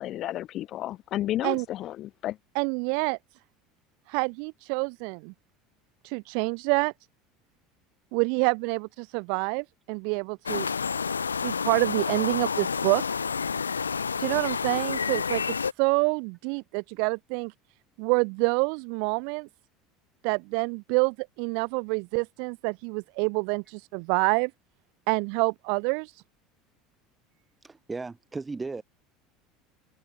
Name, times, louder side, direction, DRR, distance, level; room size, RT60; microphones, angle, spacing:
voice 1, 0.0-2.4, left 13 dB, 50° left, 3.5 m, -32 dB
voice 2, 2.6-3.2 4.1-5.3 6.0-6.9 8.1-10.7 11.4-13.0 14.2-17.5 18.0-19.5 20.2-24.5 25.1-26.1, right 40 dB or more, 60° right, 1.9 m, -27 dB
sound 1, 10.5-15.7, left 6 dB, 85° left, 0.4 m, -29 dB
voice 3, 27.6-28.8, right 3 dB, 20° right, 6.8 m, -36 dB
open air
figure-of-eight pair, 70°, 0 cm